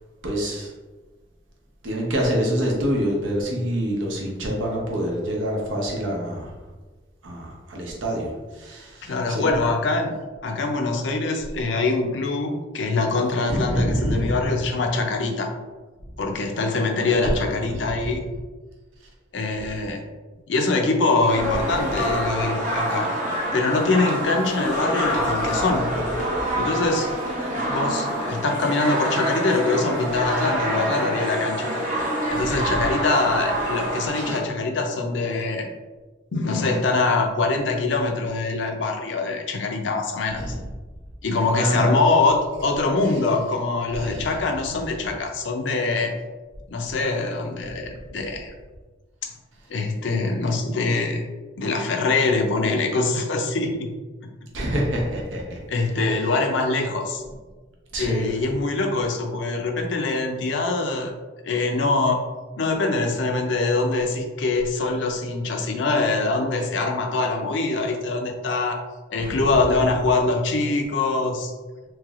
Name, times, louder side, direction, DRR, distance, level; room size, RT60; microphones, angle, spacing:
voice 1, 0.2-0.7 1.8-6.5 7.2-9.5 13.5-14.4 17.0-17.9 32.7-32.8 40.4-40.6 41.5-41.9 44.0-44.3 54.5-55.6 57.9-58.3 69.2-69.4, equal, 85° right, -2 dB, 0.8 m, -26 dB
voice 2, 9.0-10.2 10.4-15.5 16.2-18.2 19.3-20.0 20.5-23.1 23.5-26.0 26.6-27.1 27.7-31.7 32.3-35.7 36.3-40.5 41.2-46.2 46.7-48.5 49.2-49.3 49.7-51.3 51.6-53.9 54.2-54.3 55.7-57.2 58.0-61.1 61.4-62.2 62.6-68.8 69.1-71.5, left 3 dB, 70° left, 3 dB, 0.5 m, -24 dB
sound 1, 21.3-34.4, equal, 40° right, 0.7 m, -26 dB
3.1 x 3.0 x 2.4 m, 1.3 s
head